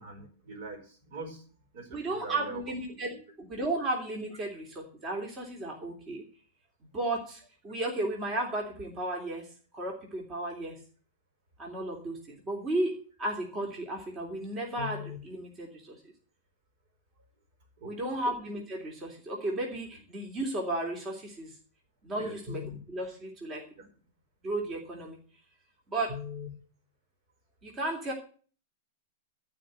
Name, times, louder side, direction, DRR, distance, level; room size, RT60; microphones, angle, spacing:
voice 1, 0.0-1.4 1.7-2.8 3.1-3.2 17.8-18.2 22.1-22.4 23.8-23.9, right 3 dB, 60° right, 5 dB, 4.7 m, -43 dB
voice 2, 1.9-3.1 3.5-6.2 6.9-9.5 9.7-10.8 11.6-16.0 17.8-21.5 22.0-23.6 24.4-25.2 25.9-26.5 27.6-28.1, right 1 dB, 30° right, 0 dB, 3.2 m, -34 dB
14.0 x 5.0 x 9.3 m, 0.42 s
hypercardioid pair, 105°, 0 cm